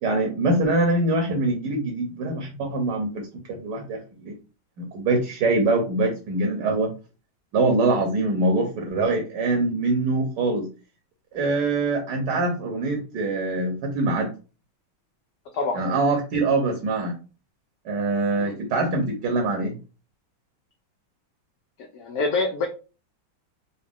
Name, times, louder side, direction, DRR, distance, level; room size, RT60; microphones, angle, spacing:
voice 1, 0.0-4.3 4.8-6.9 7.5-10.7 11.3-14.3 15.7-17.2 17.8-19.8, right 2 dB, 65° right, 3 dB, 1.4 m, -24 dB
voice 2, 21.9-22.7, left 3 dB, 65° left, 1 dB, 1.0 m, -25 dB
4.0 x 2.2 x 3.6 m, 0.32 s
omnidirectional pair, 2.2 m